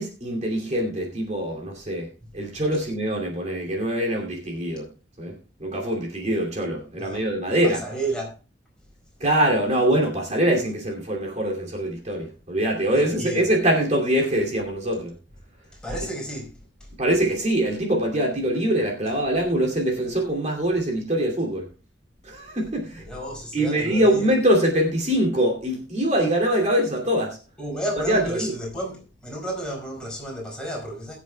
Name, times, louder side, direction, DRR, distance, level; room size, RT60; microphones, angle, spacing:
voice 1, 0.0-4.9 5.2-5.3 5.6-7.8 9.2-15.1 17.0-21.7 22.2-23.0 23.5-27.4 28.1-28.5, right 1 dB, 40° right, 2.6 m, -23 dB
voice 2, 7.6-8.3 13.1-13.4 15.7-16.5 22.9-24.3 27.6-31.2, right 1 dB, 5° left, 4.6 m, -32 dB
22.0 x 7.4 x 2.2 m
head